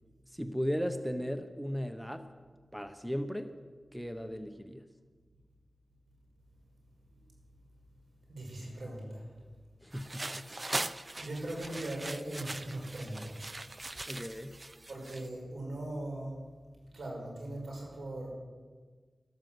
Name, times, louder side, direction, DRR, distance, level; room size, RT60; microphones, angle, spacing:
voice 1, 0.3-2.3 2.7-3.5 3.9-4.9 9.8-10.4 14.0-14.6, equal, ahead, 9 dB, 1.0 m, -36 dB
voice 2, 8.3-9.4 11.1-13.4 14.9-16.4 16.9-18.3, right 1 dB, 75° right, -1 dB, 5.7 m, -40 dB
sound 1, 9.9-15.3, right 2 dB, 35° right, 0.6 m, -40 dB
12.5 x 12.5 x 7.8 m, 1.5 s
cardioid pair, 55°, 0 cm